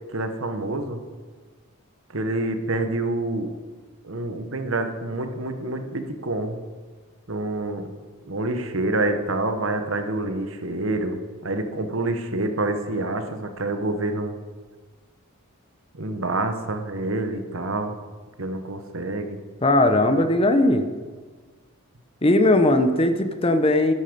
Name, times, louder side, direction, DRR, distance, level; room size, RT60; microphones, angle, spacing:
voice 1, 0.1-1.0 2.1-3.5 4.0-6.6 7.3-7.9 8.2-14.3 15.9-17.9 18.4-19.4, right 2 dB, 65° right, 7 dB, 1.2 m, -27 dB
voice 2, 19.6-20.9 22.2-23.9, left 1 dB, 25° left, 9 dB, 0.8 m, -18 dB
11.5 x 10.0 x 5.3 m, 1.4 s
head